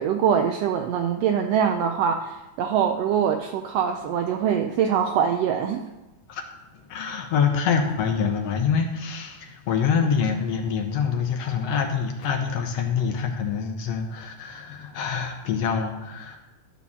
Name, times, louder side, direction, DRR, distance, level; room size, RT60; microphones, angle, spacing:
voice 1, 0.0-5.8, right 8 dB, 80° right, 6 dB, 1.4 m, -23 dB
voice 2, 6.7-16.4, left 6 dB, 70° left, 4 dB, 1.7 m, -25 dB
12.5 x 4.5 x 7.0 m, 1.1 s
omnidirectional pair, 3.4 m